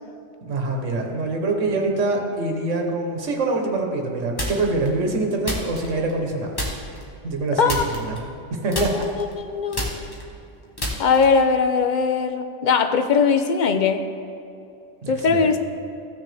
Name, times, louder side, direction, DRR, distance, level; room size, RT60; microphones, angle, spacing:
voice 1, 0.4-6.5 7.2-8.2 8.5-9.1 15.0-15.5, right 2 dB, 80° right, 2 dB, 1.5 m, -25 dB
sound 1, 4.4-4.9 5.4-6.3 6.6-7.1 7.7-8.5 8.7-11.5, equal, 20° left, 1.3 m, -29 dB
voice 2, 8.7-9.9 11.0-14.0 15.1-15.6, left 5 dB, 50° left, 7 dB, 0.6 m, -20 dB
15.5 x 6.4 x 3.4 m, 2.6 s
omnidirectional pair, 1.3 m